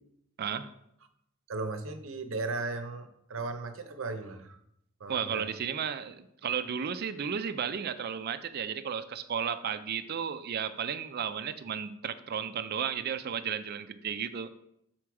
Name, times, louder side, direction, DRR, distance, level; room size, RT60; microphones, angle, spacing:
voice 1, 0.4-0.7 5.1-14.5, right 7 dB, 50° right, 11 dB, 0.4 m, -34 dB
voice 2, 1.5-4.6 5.0-5.5, right 3 dB, 80° right, 8 dB, 0.7 m, -36 dB
6.1 x 4.3 x 4.7 m, 0.78 s
head